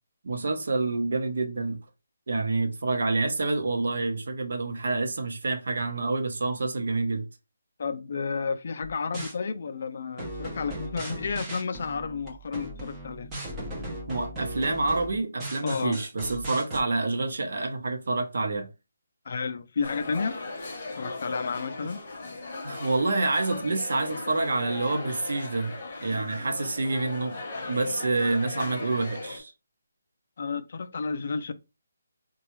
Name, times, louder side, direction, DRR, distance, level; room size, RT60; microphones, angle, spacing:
voice 1, 0.2-1.8 2.3-7.3 14.1-18.7 21.8-21.9 22.6-25.8 26.0-27.4 27.7-29.5, right 3 dB, 60° right, 0.7 m, -27 dB
voice 2, 7.8-13.3 15.6-16.0 19.3-20.3 21.0-22.0 30.4-31.5, left 5 dB, 40° left, 0.3 m, -31 dB
sound 1, 8.8-9.3 10.2-16.8, right 1 dB, 10° right, 0.7 m, -37 dB
sound 2, 19.8-29.4, left 2 dB, 25° left, 1.0 m, -37 dB
4.0 x 2.2 x 3.0 m
hypercardioid pair, 175°, 0 cm